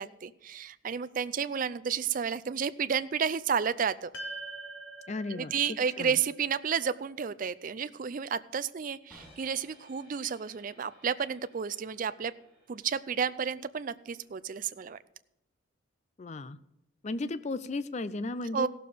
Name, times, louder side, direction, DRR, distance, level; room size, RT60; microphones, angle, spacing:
voice 1, 0.0-4.1 5.3-12.3 12.7-15.0 18.5-18.7, right 7 dB, 40° right, 15 dB, 0.4 m, -31 dB
sound 1, 4.1-8.6, right 2 dB, 75° left, 1.7 m, -46 dB
voice 2, 5.1-6.2 16.2-16.6 17.0-18.7, left 2 dB, 35° left, 14 dB, 0.4 m, -35 dB
sound 2, 9.1-15.1, equal, 5° left, 5.1 m, -60 dB
16.0 x 6.8 x 5.0 m, 0.87 s
head